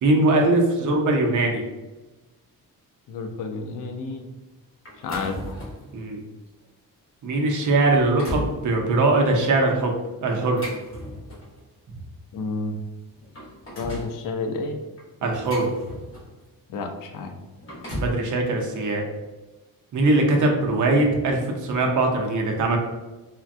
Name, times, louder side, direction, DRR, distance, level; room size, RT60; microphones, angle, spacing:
voice 1, 0.0-1.6 5.9-6.2 7.2-9.9 10.2-10.6 15.2-15.7 17.9-19.0 19.9-22.8, right 2 dB, 55° right, 1 dB, 0.5 m, -21 dB
voice 2, 3.1-4.3 5.0-5.6 12.3-12.7 13.8-14.8 16.7-17.3, left 3 dB, 60° left, 4 dB, 0.4 m, -30 dB
sound 1, 4.8-5.9 6.5-6.6 7.2-7.3 7.8-8.6 10.3-11.6 12.6-12.7 13.1-14.1 15.0-16.4 17.4-18.2, equal, 35° left, 0.9 m, -35 dB
3.3 x 2.1 x 2.5 m, 1.1 s
wide cardioid pair, 165°, 36 cm